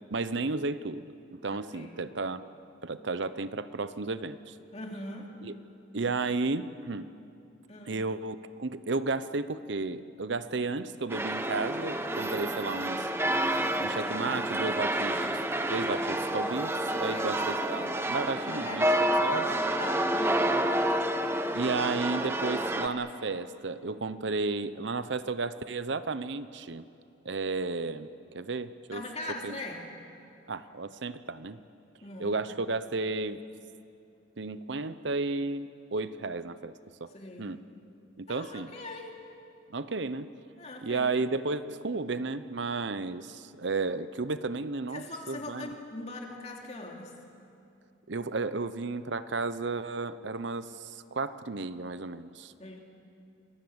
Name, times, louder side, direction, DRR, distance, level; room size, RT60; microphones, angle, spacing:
voice 1, 0.1-1.1 1.4-2.4 2.8-4.6 5.4-5.6 5.9-7.1 7.9-13.1 13.8-15.4 15.7-18.9 19.2-19.5 21.5-26.9 27.2-29.0 29.4-29.6 30.5-31.6 32.2-33.4 34.4-36.7 37.0-37.1 37.4-37.6 38.2-38.7 39.7-40.3 40.8-45.7 48.1-52.5, right 3 dB, 70° right, 13 dB, 0.8 m, -33 dB
voice 2, 1.5-2.0 4.7-5.3 7.7-8.0 12.4-12.9 17.0-17.4 18.4-19.5 19.8-20.5 24.1-24.3 28.9-29.9 32.0-32.4 37.1-37.5 38.3-39.2 40.6-41.1 44.9-47.2 52.6-52.8, left 2 dB, 35° left, 1 dB, 3.0 m, -41 dB
sound 1, 11.1-22.9, right 1 dB, 10° right, 1.0 m, -29 dB
28.0 x 21.0 x 8.0 m, 2.6 s
head